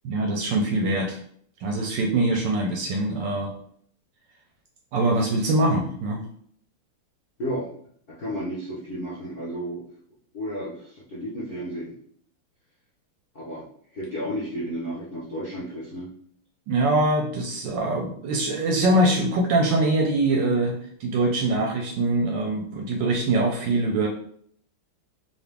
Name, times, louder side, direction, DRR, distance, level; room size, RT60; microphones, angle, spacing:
voice 1, 0.0-1.2 1.6-3.5 4.9-6.2 16.7-24.1, right 2 dB, 75° right, 1 dB, 1.1 m, -23 dB
voice 2, 8.1-9.9 10.3-11.9 13.3-13.6 13.9-16.1, equal, 70° left, -7 dB, 0.5 m, -32 dB
3.9 x 2.4 x 3.4 m, 0.62 s
omnidirectional pair, 2.4 m